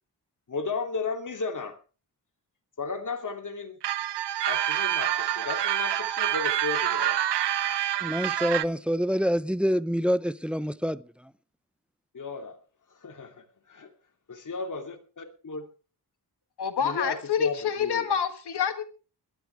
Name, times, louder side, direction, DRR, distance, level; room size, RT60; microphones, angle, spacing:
voice 1, 0.5-1.8 2.8-3.8 4.5-7.2 12.1-12.6 13.0-13.9 14.3-15.7 16.8-18.1, left 4 dB, 50° left, 2.9 m, -34 dB
sound 1, 3.8-8.6, right 12 dB, 80° right, 0.8 m, -27 dB
voice 2, 8.0-11.3, equal, 5° right, 0.6 m, -27 dB
voice 3, 16.6-18.8, left 7 dB, 70° left, 1.6 m, -27 dB
20.5 x 13.0 x 3.5 m
wide cardioid pair, 95°, 41 cm